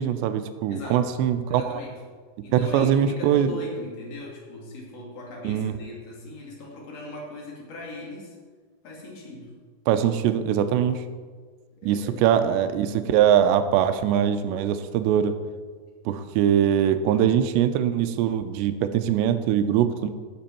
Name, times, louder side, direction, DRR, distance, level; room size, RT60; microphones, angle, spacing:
voice 1, 0.0-1.8 2.5-3.6 5.4-5.8 9.9-11.0 11.8-15.3 16.1-20.1, right 9 dB, 85° right, 10 dB, 2.9 m, -22 dB
voice 2, 0.7-1.1 1.5-2.0 2.4-8.4 8.8-9.5 11.8-12.2 12.5-13.0, left 2 dB, 45° left, -2 dB, 2.8 m, -39 dB
17.5 x 7.3 x 4.4 m, 1.5 s
omnidirectional pair, 5.0 m